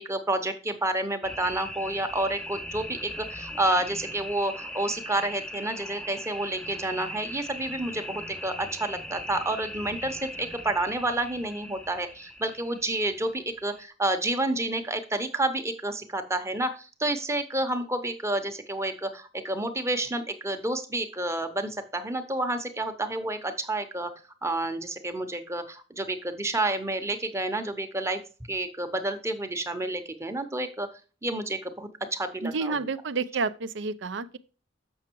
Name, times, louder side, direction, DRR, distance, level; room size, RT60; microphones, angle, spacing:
voice 1, 0.0-24.1 24.4-28.2 28.5-30.9 31.2-32.9, right 2 dB, 15° right, 0.8 m, -29 dB
sound 1, 1.2-13.8, left 1 dB, 5° left, 0.5 m, -40 dB
voice 2, 32.4-34.4, right 4 dB, 65° right, 0.5 m, -30 dB
7.2 x 5.9 x 4.5 m
head